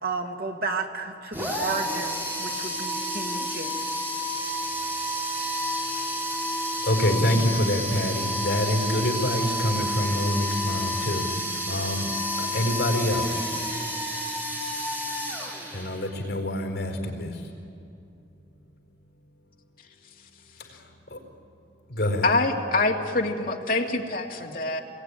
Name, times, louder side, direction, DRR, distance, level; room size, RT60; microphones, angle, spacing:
voice 1, 0.0-4.0, right 4 dB, 60° right, 2 dB, 2.4 m, -32 dB
sound 1, 1.3-16.2, equal, 10° right, 4.5 m, -30 dB
voice 2, 6.8-11.2 11.7-12.1 12.4-13.4 15.7-17.3 21.1-21.2 21.9-22.3, left 1 dB, 70° left, 3 dB, 4.5 m, -26 dB
voice 3, 22.2-24.8, left 2 dB, 50° left, 1 dB, 2.2 m, -25 dB
28.0 x 21.5 x 9.8 m, 2.7 s
head